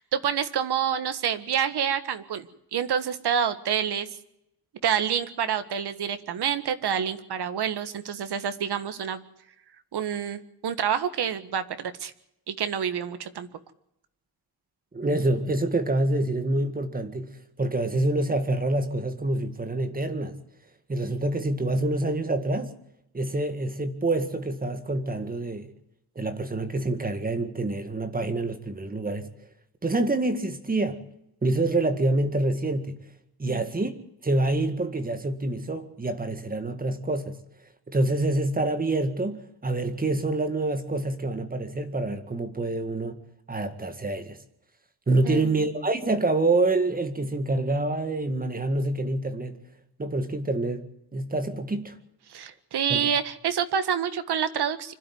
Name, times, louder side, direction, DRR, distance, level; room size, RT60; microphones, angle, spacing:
voice 1, 0.0-4.1 4.8-9.2 9.9-12.1 12.5-13.5 33.4-33.6 45.2-45.6 52.3-54.9, right 8 dB, 80° right, 1.7 m, -28 dB
voice 2, 14.9-20.4 20.9-22.7 23.1-25.7 26.2-29.3 29.8-31.0 31.4-33.0 33.4-33.9 34.2-37.4 37.9-43.2 43.5-44.4 45.1-49.6 50.0-50.9 51.1-51.9 52.9-53.1, right 2 dB, 20° right, 2.0 m, -26 dB
25.5 x 12.5 x 9.5 m
wide cardioid pair, 165°, 39 cm